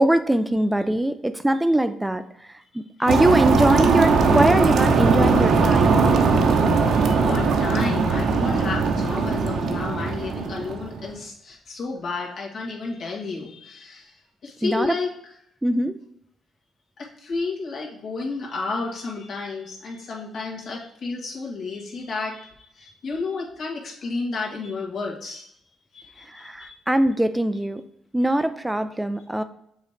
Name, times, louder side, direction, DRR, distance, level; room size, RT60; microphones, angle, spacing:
voice 1, 0.0-2.2 2.5-6.0 14.6-15.0 15.6-16.0 26.3-27.8 28.1-29.4, right 1 dB, 10° right, 10 dB, 0.3 m, -22 dB
sound 1, 3.1-11.0, right 4 dB, 70° right, 0.8 m, -20 dB
voice 2, 6.8-14.1 14.4-15.1 17.0-25.5 25.9-26.8, left 4 dB, 60° left, -3 dB, 1.9 m, -32 dB
6.9 x 2.9 x 5.0 m, 0.75 s
cardioid pair, 90°, 0 cm